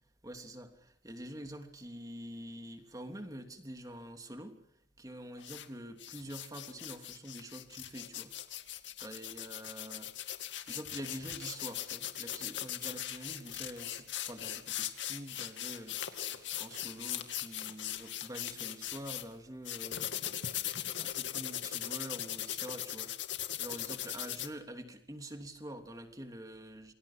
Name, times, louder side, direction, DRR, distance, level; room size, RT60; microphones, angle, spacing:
voice 1, 0.2-4.6 5.0-8.3 9.0-20.1 20.5-20.6 21.0-23.2 23.6-26.9, right 1 dB, 20° right, 5 dB, 3.0 m, -46 dB
sound 1, 5.4-5.7 6.0-19.2 19.7-24.5, left 11 dB, 80° left, 2.3 m, -39 dB
28.5 x 24.0 x 6.4 m, 0.65 s
head